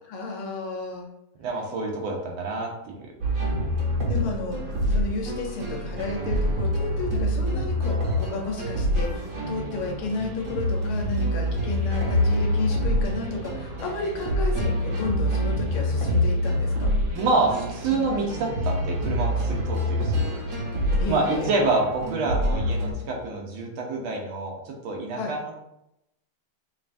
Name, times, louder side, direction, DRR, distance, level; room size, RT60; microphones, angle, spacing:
voice 1, 0.0-1.1 4.1-4.6 4.9-17.0 21.0-21.6 25.1-25.3, left 3 dB, 90° left, 1 dB, 1.6 m, -32 dB
voice 2, 1.4-3.0 17.1-20.3 21.1-25.5, right 3 dB, 75° right, 0 dB, 1.6 m, -27 dB
sound 1, 3.2-22.9, equal, 55° right, 1.0 m, -26 dB
5.5 x 2.5 x 2.5 m, 0.85 s
omnidirectional pair, 2.3 m